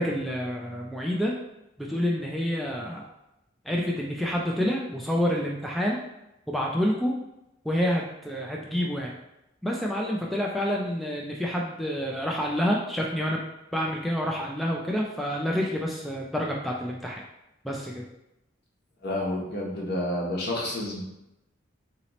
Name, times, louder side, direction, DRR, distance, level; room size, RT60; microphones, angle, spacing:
voice 1, 0.0-1.3 1.8-3.0 3.6-6.0 6.5-7.1 7.6-9.1 9.6-13.4 13.7-17.2 17.6-18.0, equal, ahead, -2 dB, 0.3 m, -28 dB
voice 2, 19.0-21.0, left 1 dB, 55° left, -2 dB, 0.9 m, -29 dB
3.9 x 2.9 x 3.0 m, 0.89 s
head